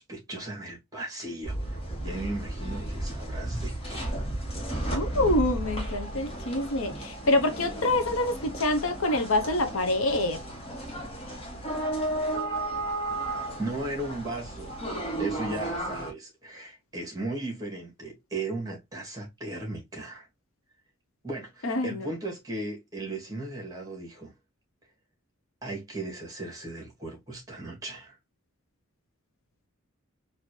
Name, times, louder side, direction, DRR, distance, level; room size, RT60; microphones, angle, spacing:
voice 1, 0.0-4.1 13.6-14.8 15.2-20.3 21.2-24.3 25.6-28.2, right 2 dB, 15° right, 2.0 m, -36 dB
sound 1, 1.4-16.1, right 1 dB, 30° left, 1.6 m, -33 dB
voice 2, 4.9-10.4 21.6-22.1, left 2 dB, 70° left, 0.8 m, -26 dB
4.3 x 2.8 x 3.2 m
head